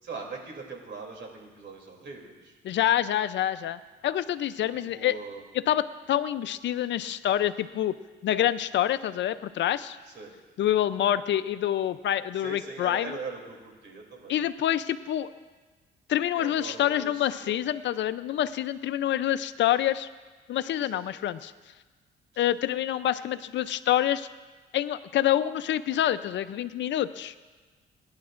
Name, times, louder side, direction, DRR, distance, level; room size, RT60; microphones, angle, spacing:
voice 1, 0.0-2.5 4.9-5.4 10.1-10.3 12.4-14.4 16.4-17.1 17.4-17.6 20.9-21.0 22.3-22.4, right 4 dB, 65° right, 1 dB, 2.9 m, -41 dB
voice 2, 2.6-5.2 5.5-8.0 8.2-10.0 10.6-13.2 14.3-15.3 16.1-20.1 20.5-21.5 22.4-24.3 24.7-27.3, left 11 dB, 65° left, 13 dB, 0.5 m, -27 dB
24.5 x 10.5 x 2.5 m, 1.3 s
cardioid pair, 90°, 20 cm